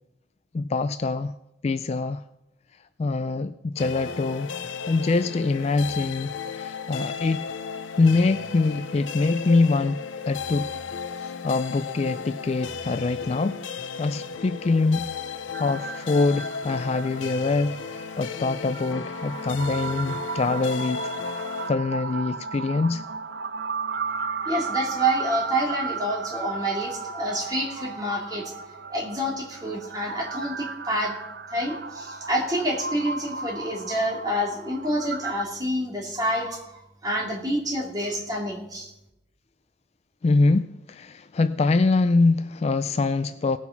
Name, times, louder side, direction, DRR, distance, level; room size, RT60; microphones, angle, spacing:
voice 1, 0.5-1.3 1.6-2.2 3.0-4.6 4.9-7.5 8.0-10.0 10.3-10.7 11.2-13.6 14.0-21.1 21.7-23.0 40.2-43.6, left 3 dB, 35° left, 12 dB, 0.3 m, -24 dB
sound 1, 3.8-21.7, left 6 dB, 80° left, 0.7 m, -35 dB
sound 2, 15.5-35.4, right 5 dB, 55° right, 0.6 m, -35 dB
voice 2, 24.5-28.5 28.9-31.1 31.5-36.7 37.0-38.9, right 1 dB, 20° right, -2 dB, 2.7 m, -28 dB
18.0 x 6.1 x 5.9 m, 0.88 s
head